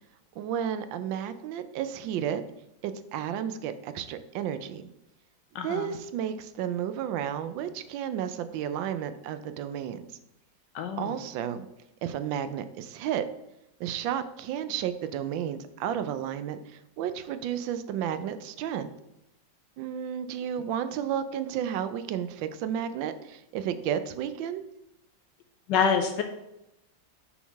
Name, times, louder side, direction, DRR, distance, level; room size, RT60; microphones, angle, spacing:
voice 1, 0.4-2.4 2.8-4.8 5.6-10.0 11.0-11.7 12.0-13.2 13.8-16.6 17.0-18.9 19.8-24.6, right 9 dB, 90° right, 11 dB, 1.3 m, -32 dB
voice 2, 5.5-5.9 10.7-11.1 25.7-26.2, left 6 dB, 75° left, 5 dB, 1.2 m, -26 dB
6.2 x 4.0 x 5.7 m, 0.85 s
omnidirectional pair, 2.0 m